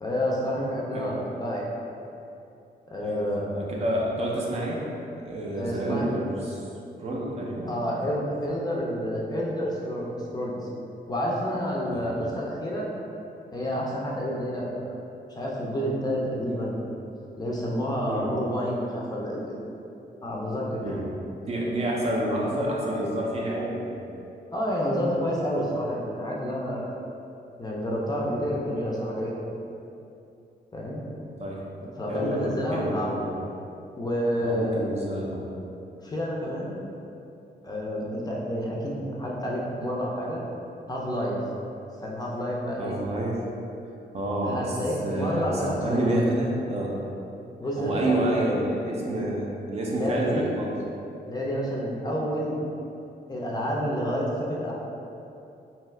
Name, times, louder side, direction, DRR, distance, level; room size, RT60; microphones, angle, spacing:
voice 1, 0.0-1.7 2.9-3.5 5.5-6.1 7.7-10.6 11.1-12.9 13.5-14.7 15.4-16.8 17.4-19.6 20.2-21.0 24.5-27.0 27.6-29.3 30.7-31.0 31.8-33.2 33.9-34.8 36.0-36.7 37.6-40.4 40.9-41.4 42.0-43.0 44.4-46.3 47.6-48.4 49.9-50.5 51.3-52.6 53.3-54.7, equal, 25° left, -4 dB, 0.4 m, -29 dB
voice 2, 3.0-4.8 5.1-6.6 7.0-7.7 11.9-12.0 18.1-18.3 20.8-21.0 21.5-24.0 28.2-28.3 31.4-31.6 32.1-33.4 34.4-35.5 42.8-43.4 44.1-44.8 45.0-47.0 47.8-50.8, right 1 dB, 40° right, -3 dB, 0.4 m, -29 dB
2.7 x 2.3 x 3.1 m, 2.7 s
cardioid pair, 125°, 17 cm